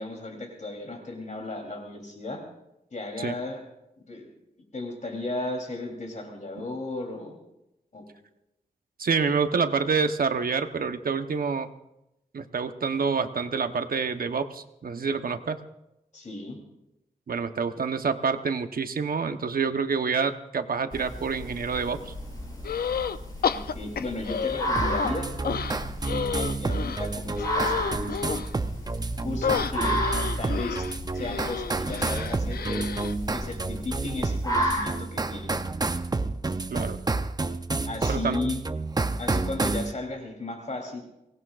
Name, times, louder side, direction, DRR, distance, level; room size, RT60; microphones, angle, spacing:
voice 1, 0.0-2.4 2.9-3.6 4.1-4.3 4.7-7.4 7.9-8.0 16.1-16.6 23.4-25.3 26.0-28.3 29.2-30.0 30.4-30.9 31.1-32.9 33.3-35.5 37.9-38.6 39.2-41.0, left 2 dB, 50° left, 1 dB, 3.3 m, -35 dB
voice 2, 9.0-11.7 12.3-15.6 17.3-22.1 36.7-37.0 38.1-38.4, right 5 dB, 70° right, 8 dB, 1.0 m, -27 dB
sound 1, 20.9-34.9, equal, 25° left, 4.6 m, -33 dB
sound 2, 22.6-23.2 23.4-25.1 25.4-28.5 29.4-33.1, left 7 dB, 80° left, 0.5 m, -31 dB
sound 3, 24.8-39.9, right 3 dB, 25° right, 0.6 m, -30 dB
23.5 x 18.0 x 2.5 m, 0.88 s
wide cardioid pair, 110°, 15 cm